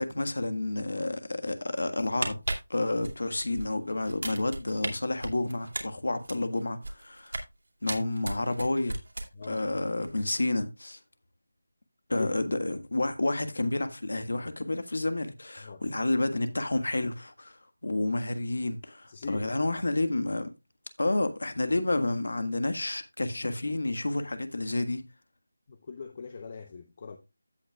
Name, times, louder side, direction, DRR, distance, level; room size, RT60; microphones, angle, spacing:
voice 1, 0.0-2.4 2.7-7.4 7.8-9.0 9.5-11.0 12.1-20.5 21.0-25.0, left 2 dB, 75° left, 1.6 m, -30 dB
sound 1, 2.0-3.7 4.0-4.9 5.2-7.5 7.9-9.6 9.9-10.1, right 2 dB, 75° right, 2.5 m, -35 dB
voice 2, 9.3-9.6 12.1-12.3 15.6-15.8 19.1-19.5 25.7-27.2, left 5 dB, 30° left, 0.8 m, -40 dB
15.5 x 5.8 x 2.3 m
figure-of-eight pair, 170°, 0 cm